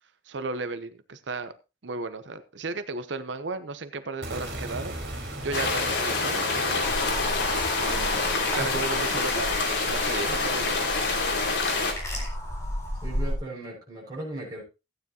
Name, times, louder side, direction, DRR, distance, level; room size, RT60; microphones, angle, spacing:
voice 1, 0.3-1.5 1.8-5.0 5.4-6.8 7.5-8.1 8.6-10.9, right 3 dB, 85° right, 11 dB, 0.8 m, -34 dB
sound 1, 4.2-10.3, right 1 dB, 70° right, 3.5 m, -39 dB
sound 2, 5.5-11.9, left 3 dB, 75° left, 2.8 m, -26 dB
sound 3, 6.8-13.3, equal, 15° left, 4.2 m, -34 dB
voice 2, 13.0-14.6, right 1 dB, 25° right, -4 dB, 6.3 m, -37 dB
14.5 x 9.5 x 2.9 m, 0.28 s
head